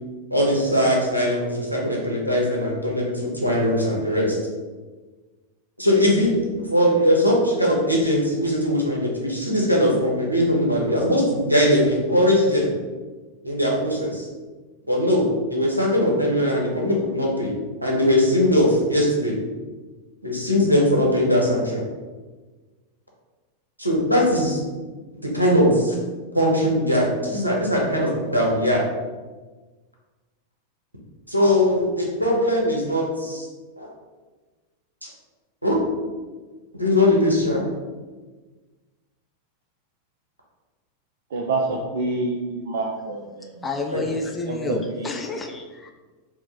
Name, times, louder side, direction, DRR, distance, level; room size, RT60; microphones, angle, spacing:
voice 1, 0.3-4.4 5.8-6.3 6.7-12.7 13.4-14.3 14.9-17.5 17.8-19.4 20.2-21.8 23.8-24.6 25.2-26.0 26.3-28.8 31.3-33.5 33.8-33.9 35.0-35.1 35.6-35.8 36.7-37.6 43.9-44.0, left 1 dB, 85° right, -3 dB, 0.8 m, -20 dB
voice 2, 41.3-43.6 44.5-45.1, right 3 dB, 60° right, 0 dB, 0.4 m, -27 dB
voice 3, 43.6-45.9, left 3 dB, 15° left, 2 dB, 0.4 m, -29 dB
4.6 x 2.1 x 3.4 m, 1.3 s
figure-of-eight pair, 90°, 0 cm